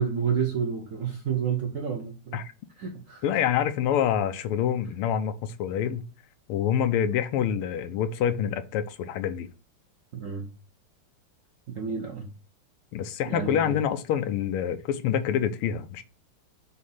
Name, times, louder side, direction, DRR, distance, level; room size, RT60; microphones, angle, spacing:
voice 1, 0.0-2.4 2.8-3.2 10.1-10.5 11.7-12.3 13.2-13.8, right 7 dB, 70° right, 0.7 m, -29 dB
voice 2, 3.2-6.0 6.5-9.5 12.9-16.0, left 9 dB, 85° left, 1.5 m, -26 dB
6.4 x 2.8 x 5.3 m
omnidirectional pair, 2.4 m